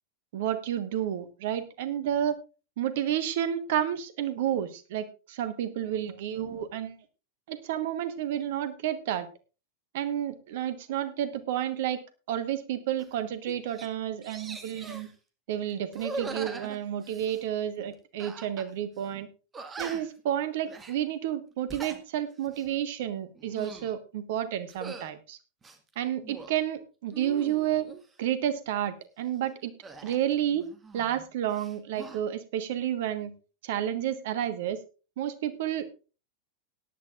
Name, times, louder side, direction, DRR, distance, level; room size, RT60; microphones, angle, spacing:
voice 1, 0.3-2.4 2.8-7.0 7.5-9.3 9.9-12.0 12.3-15.1 15.5-19.3 19.8-25.4 25.9-27.9 28.2-29.7 30.0-30.6 30.9-33.3 33.6-34.8 35.2-35.9, right 10 dB, 55° right, 11 dB, 1.4 m, -30 dB
sound 1, 13.0-13.1 13.5-13.9 14.2-15.1 15.9-17.4 18.2-18.7 19.0-19.1 19.5-20.2 20.7-21.0 21.5-22.0 22.4-22.7 23.3-23.9 24.7-25.1 25.6-26.6 27.1-28.0 29.8-31.2 31.5-32.2, right 3 dB, 20° right, 1.8 m, -42 dB
17.5 x 11.0 x 2.5 m, 0.33 s
figure-of-eight pair, 90°, 0 cm